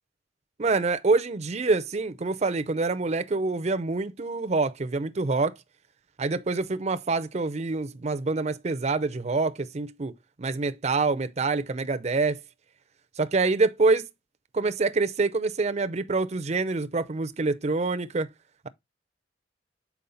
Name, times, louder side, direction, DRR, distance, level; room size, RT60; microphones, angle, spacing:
voice 1, 0.6-5.6 6.2-10.1 10.4-12.4 13.2-14.1 14.5-18.3, right 3 dB, 40° right, 0.6 m, -26 dB
7.0 x 4.6 x 3.8 m
head